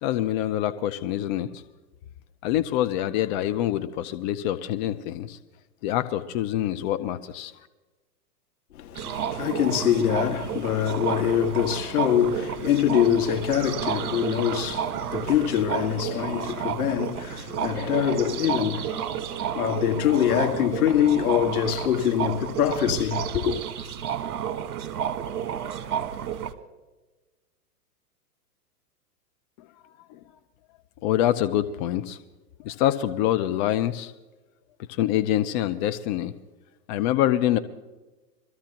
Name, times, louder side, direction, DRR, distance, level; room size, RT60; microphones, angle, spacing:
voice 1, 0.0-1.5 2.4-5.4 5.8-7.5 31.0-32.2 32.7-34.1 35.0-36.3 36.9-37.6, left 12 dB, 30° left, 0.5 m, -25 dB
voice 2, 8.7-23.6, left 10 dB, 65° left, 2.0 m, -24 dB
sound 1, 8.9-26.5, right 9 dB, 65° right, 1.5 m, -31 dB
23.5 x 14.5 x 3.0 m
hypercardioid pair, 120°, 47 cm